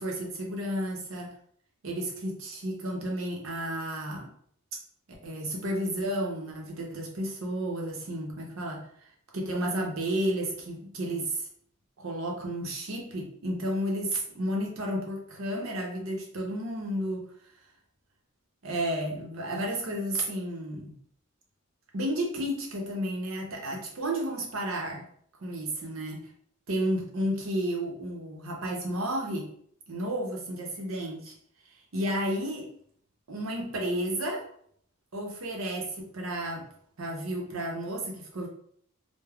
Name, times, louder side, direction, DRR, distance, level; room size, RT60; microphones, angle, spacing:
voice 1, 0.0-1.3 1.8-4.3 5.2-11.5 12.0-17.3 18.6-20.9 21.9-25.0 25.4-26.3 26.7-29.5 29.9-31.3 31.9-32.7 33.3-34.4 35.1-36.6 37.0-38.5, right 1 dB, 65° right, 0 dB, 0.7 m, -32 dB
3.3 x 2.1 x 2.3 m, 0.64 s
head